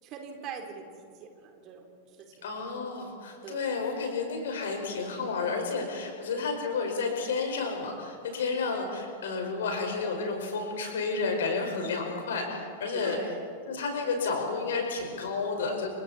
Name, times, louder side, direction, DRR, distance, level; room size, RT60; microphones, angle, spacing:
voice 1, 0.0-2.5 3.4-3.7 5.9-6.2 12.9-13.4, right 6 dB, 35° right, 3 dB, 3.8 m, -43 dB
voice 2, 2.4-13.2 13.7-15.9, left 4 dB, 60° left, 2 dB, 5.4 m, -31 dB
29.5 x 27.5 x 4.4 m, 2.3 s
figure-of-eight pair, 90°, 0 cm